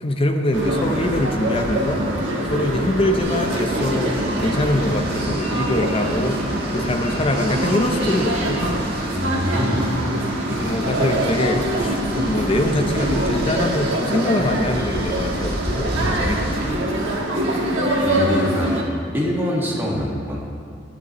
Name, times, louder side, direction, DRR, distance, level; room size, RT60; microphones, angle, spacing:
voice 1, 0.0-2.1 2.5-8.8 10.5-17.0, left 1 dB, 30° left, 6 dB, 0.6 m, -24 dB
sound 1, 0.5-18.8, right 1 dB, 70° right, 1.3 m, -24 dB
sound 2, 3.2-16.7, right 1 dB, 55° right, 1.6 m, -30 dB
voice 2, 9.1-9.9 17.6-17.8 18.0-18.8 19.1-20.4, equal, 10° right, -4 dB, 1.5 m, -24 dB
11.0 x 10.5 x 3.0 m, 2.5 s
head